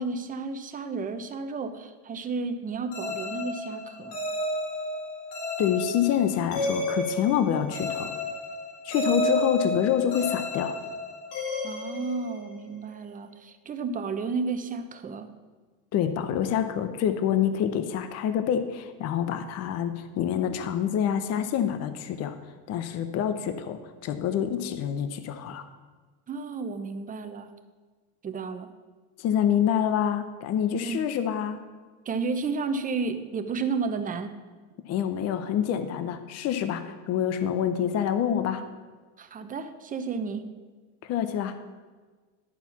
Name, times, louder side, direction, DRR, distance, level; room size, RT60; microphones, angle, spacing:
voice 1, 0.0-4.2 9.1-9.4 11.6-15.3 26.3-27.5 28.2-28.7 30.7-31.0 32.1-34.3 39.2-40.5, right 4 dB, 25° right, 8 dB, 0.8 m, -32 dB
sound 1, 2.9-12.7, left 1 dB, 75° left, 3.1 m, -32 dB
voice 2, 5.6-8.2 8.8-10.8 15.9-22.4 22.7-25.7 29.2-31.6 34.9-38.6 41.0-41.6, left 9 dB, 45° left, 10 dB, 0.7 m, -27 dB
11.5 x 4.4 x 7.1 m, 1.4 s
supercardioid pair, 120°, 35 cm